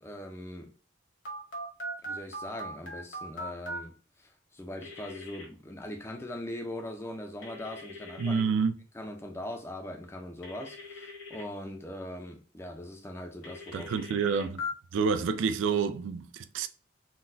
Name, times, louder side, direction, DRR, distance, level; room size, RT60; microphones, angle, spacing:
voice 1, 0.0-0.7 2.0-3.9 4.2-8.4 8.9-13.9, left 1 dB, 15° left, 0.5 m, -41 dB
Telephone, 1.2-3.8 4.8-5.4 7.4-8.4 10.4-11.4 13.4-14.7, left 1 dB, 65° left, 1.2 m, -40 dB
voice 2, 8.2-8.7 13.7-14.6 14.9-16.7, right 5 dB, 75° right, 0.3 m, -28 dB
3.8 x 2.2 x 2.6 m
head